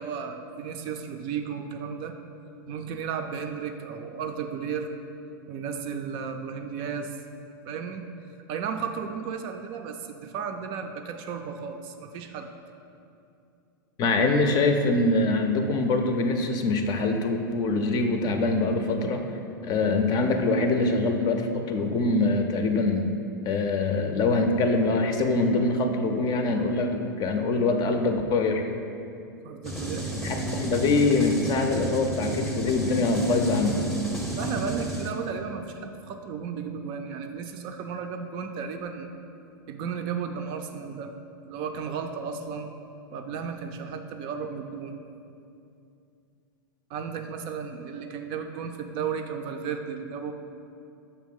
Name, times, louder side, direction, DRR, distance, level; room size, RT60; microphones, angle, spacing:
voice 1, 0.0-2.1 2.7-4.9 5.5-7.1 7.7-8.0 8.5-12.5 29.4-30.1 34.4-39.1 39.7-41.1 41.4-42.7 43.1-45.0 46.9-50.3, right 6 dB, 45° right, 5 dB, 0.4 m, -34 dB
voice 2, 14.0-19.2 19.6-23.1 23.5-28.7 30.2-33.9, left 3 dB, 35° left, 5 dB, 0.5 m, -24 dB
sound 1, 29.6-35.1, right 1 dB, 5° left, 0.7 m, -32 dB
6.3 x 2.8 x 5.3 m, 2.6 s
hypercardioid pair, 115°, 12 cm